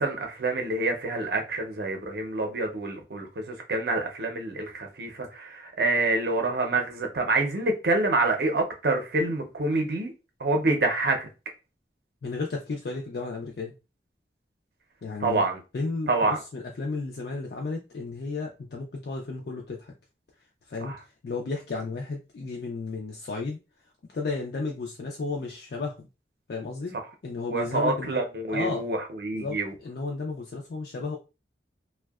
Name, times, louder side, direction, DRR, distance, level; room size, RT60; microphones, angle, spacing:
voice 1, 0.0-10.1 10.4-11.3 15.2-15.6 16.1-16.4 20.8-21.0 27.5-29.7, right 2 dB, 65° right, 0.5 m, -27 dB
voice 2, 12.2-13.8 15.0-15.4 15.7-19.9 20.7-20.9 21.2-23.6 24.1-26.1 26.5-26.9 27.2-28.2 28.5-28.8 29.3-31.2, left 3 dB, 60° left, 0.4 m, -33 dB
2.6 x 2.1 x 2.3 m
head